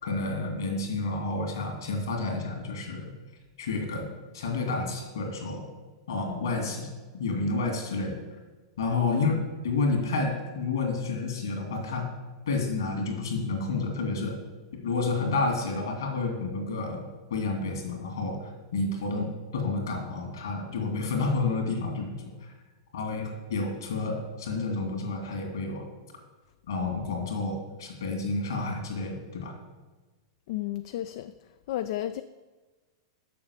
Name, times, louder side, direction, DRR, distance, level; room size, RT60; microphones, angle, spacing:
voice 1, 0.0-3.1 3.6-4.1 4.3-5.7 6.1-6.9 7.1-8.2 8.8-9.3 9.6-12.1 12.5-14.4 14.7-22.2 22.9-25.9 26.7-29.6, left 3 dB, 75° left, 2.3 m, -30 dB
voice 2, 9.1-9.4 30.5-31.3 31.7-32.2, left 13 dB, 60° left, 0.3 m, -33 dB
6.8 x 5.8 x 7.1 m
hypercardioid pair, 100°, 2 cm